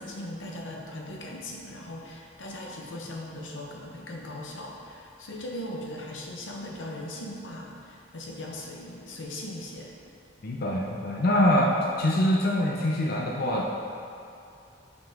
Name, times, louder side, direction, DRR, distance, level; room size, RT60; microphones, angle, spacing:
voice 1, 0.0-9.9, left 1 dB, 90° left, -1 dB, 0.9 m, -39 dB
voice 2, 10.4-13.8, left 1 dB, 55° left, -2 dB, 0.5 m, -24 dB
6.1 x 5.2 x 3.6 m, 2.6 s
head